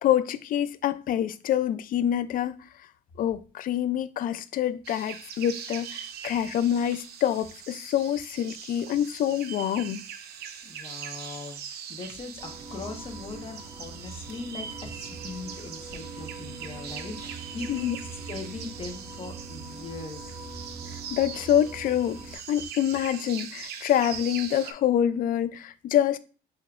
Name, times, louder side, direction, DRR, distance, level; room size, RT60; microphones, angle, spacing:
voice 1, 0.0-2.5 3.2-10.0 17.7-18.0 21.1-26.2, left 10 dB, 55° left, 0.4 m, -26 dB
sound 1, 4.8-24.7, right 8 dB, 70° right, 0.7 m, -42 dB
voice 2, 10.6-17.9 18.3-20.2, left 4 dB, 35° left, 1.2 m, -40 dB
sound 2, 12.4-22.4, right 4 dB, 35° right, 2.1 m, -42 dB
6.8 x 3.1 x 2.5 m
cardioid pair, 110°, 17 cm